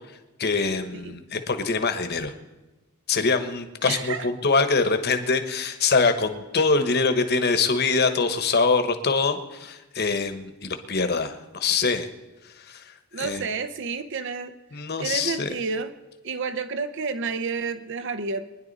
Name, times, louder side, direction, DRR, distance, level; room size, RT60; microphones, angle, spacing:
voice 1, 0.4-2.3 3.1-12.1 12.4-13.4 14.7-15.5, left 4 dB, 50° left, 8 dB, 1.2 m, -24 dB
voice 2, 3.8-4.3 13.1-14.5 15.0-15.9 16.2-18.5, right 4 dB, 60° right, 11 dB, 0.8 m, -30 dB
23.5 x 10.5 x 4.1 m, 1.1 s
head